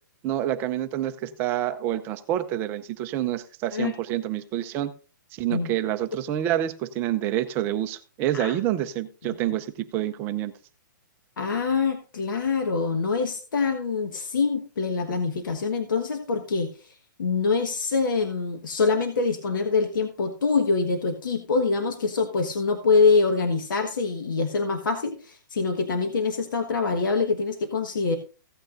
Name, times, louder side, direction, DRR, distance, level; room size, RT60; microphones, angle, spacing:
voice 1, 0.2-4.9 5.3-10.5, right 12 dB, 20° right, 0.5 m, -27 dB
voice 2, 11.4-28.2, left 4 dB, 75° left, 1.5 m, -25 dB
15.5 x 9.0 x 2.6 m
hypercardioid pair, 165°, 11 cm